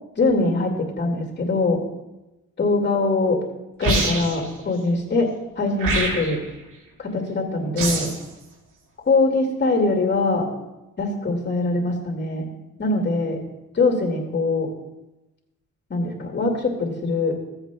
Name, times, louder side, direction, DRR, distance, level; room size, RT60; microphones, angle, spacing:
voice 1, 0.2-1.8 2.6-3.4 3.8-5.3 5.6-6.4 7.0-8.1 9.1-10.5 11.0-12.5 12.8-13.4 13.7-14.7 15.9-17.4, left 3 dB, 35° left, 1 dB, 2.2 m, -22 dB
sound 1, 3.8-4.5 5.8-6.5 7.8-8.2, right 2 dB, 85° right, 2.3 m, -24 dB
16.0 x 7.9 x 2.3 m, 1.0 s
cardioid pair, 90°, 30 cm